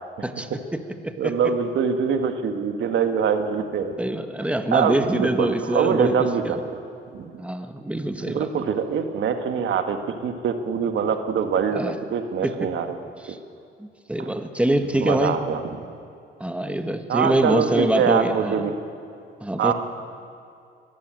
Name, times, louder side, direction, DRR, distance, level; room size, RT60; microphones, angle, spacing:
voice 1, 0.2-1.3 4.0-6.6 7.4-8.5 11.7-11.9 12.4-12.7 13.3-13.4 13.8-15.4 16.4-18.6 19.4-19.7, right 1 dB, 5° right, 7 dB, 1.6 m, -25 dB
voice 2, 1.2-3.9 4.7-6.6 7.1-7.4 8.3-12.9 14.2-14.3 15.0-15.8 17.1-18.7 19.6-19.7, right 7 dB, 70° right, 7 dB, 1.7 m, -24 dB
22.5 x 14.5 x 9.0 m, 2.4 s
cardioid pair, 90°, 20 cm